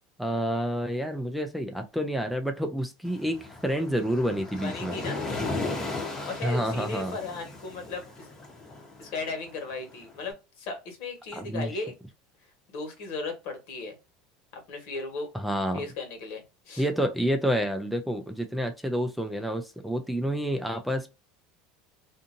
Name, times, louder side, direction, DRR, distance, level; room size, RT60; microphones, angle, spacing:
voice 1, 0.2-4.9 6.4-7.2 11.3-11.8 15.3-15.8 16.8-21.1, equal, ahead, 0.4 m, -29 dB
Waves surf, 3.1-10.2, left 3 dB, 20° left, 0.8 m, -36 dB
voice 2, 4.6-5.3 6.2-8.3 9.0-11.9 12.7-13.9 14.5-15.3 15.7-16.9, left 3 dB, 65° left, 1.3 m, -36 dB
2.6 x 2.6 x 2.5 m
supercardioid pair, 125°, 3 cm